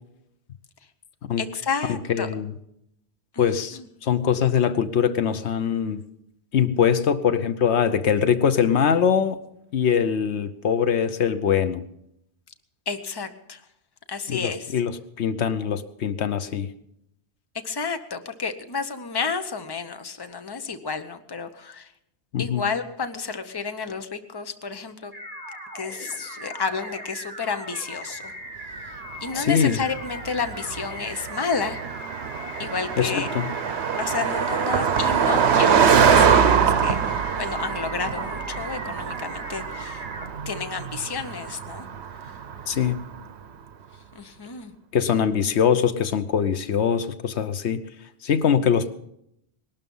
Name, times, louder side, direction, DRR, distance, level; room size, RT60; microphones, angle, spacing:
voice 1, 1.4-2.3 3.3-3.5 3.7-3.9 12.9-13.6 14.1-14.8 17.6-21.9 22.4-25.1 25.7-28.3 28.6-31.8 32.6-33.3 34.0-40.1 40.5-41.9 42.2-42.4 44.1-44.7, left 5 dB, 25° left, 8 dB, 0.9 m, -31 dB
voice 2, 2.1-2.5 3.4-6.0 6.5-9.4 9.7-11.8 14.3-14.9 15.2-16.7 22.3-22.6 29.4-29.8 33.0-33.5 42.7-43.0 44.9-47.8 48.2-48.9, left 7 dB, 85° left, 11 dB, 1.1 m, -22 dB
sound 1, 25.1-40.3, right 1 dB, 65° right, 2.8 m, -39 dB
Car passing by, 29.4-43.1, right 7 dB, 80° right, 1.2 m, -23 dB
19.5 x 12.5 x 5.5 m, 0.78 s
omnidirectional pair, 1.1 m